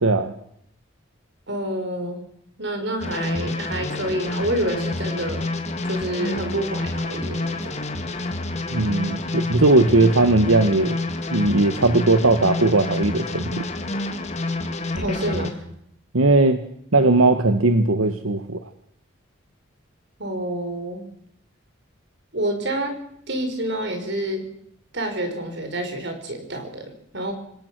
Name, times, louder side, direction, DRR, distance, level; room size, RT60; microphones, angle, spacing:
voice 1, 0.0-0.3 8.7-11.0 11.3-13.7 16.1-16.6 16.9-18.6, right 2 dB, 85° right, 8 dB, 1.4 m, -18 dB
voice 2, 1.5-2.2 2.6-5.5 5.8-7.8 14.9-15.6 20.2-21.1 22.3-23.0 23.3-24.5 24.9-27.3, right 1 dB, 55° right, 6 dB, 5.0 m, -28 dB
sound 1, 3.0-15.5, left 2 dB, 35° left, 2.1 m, -28 dB
26.5 x 17.5 x 6.2 m, 0.72 s
head